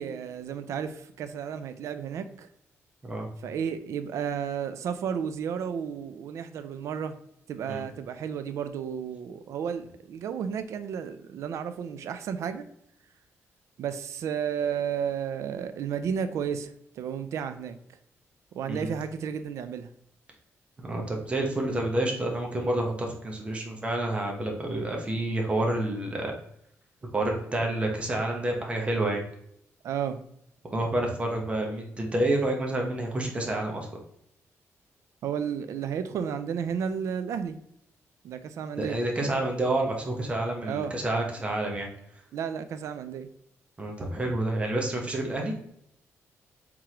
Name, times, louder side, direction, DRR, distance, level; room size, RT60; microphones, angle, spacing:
voice 1, 0.0-2.5 3.4-7.2 7.5-12.7 13.8-17.8 18.5-19.9 29.8-30.2 35.2-37.6 38.2-39.0 40.6-40.9 42.3-43.3, right 7 dB, 70° right, 10 dB, 0.4 m, -32 dB
voice 2, 20.8-26.3 27.1-29.2 30.7-33.9 38.8-41.9 43.8-45.5, right 1 dB, 20° right, 1 dB, 1.0 m, -29 dB
4.7 x 3.7 x 2.9 m, 0.74 s
cardioid pair, 150°, 5 cm